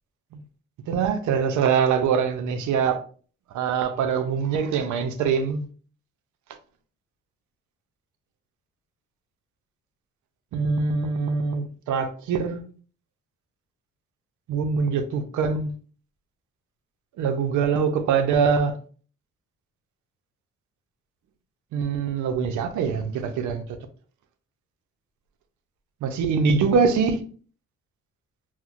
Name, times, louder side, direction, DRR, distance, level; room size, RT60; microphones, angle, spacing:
voice 1, 0.9-3.0 3.5-5.7 10.5-12.6 14.5-15.8 17.2-18.8 21.7-23.6 26.0-27.2, right 5 dB, 75° right, 0.6 m, -23 dB
4.2 x 2.1 x 2.4 m
cardioid pair, 90°, 30 cm